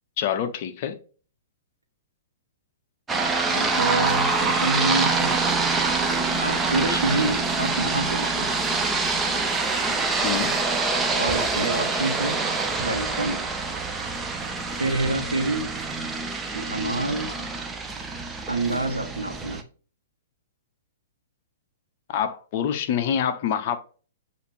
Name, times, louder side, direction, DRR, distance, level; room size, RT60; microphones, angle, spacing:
voice 1, 0.2-1.0 10.2-10.5 22.1-23.8, left 8 dB, 45° left, 0.5 m, -26 dB
sound 1, 3.1-19.6, right 3 dB, 15° right, 0.5 m, -25 dB
voice 2, 3.5-5.3 6.4-8.5 11.1-12.4 12.8-13.4 14.8-15.7 16.5-17.3 18.5-19.6, right 2 dB, 80° right, 0.9 m, -27 dB
6.5 x 2.5 x 3.1 m
figure-of-eight pair, 110°, 0 cm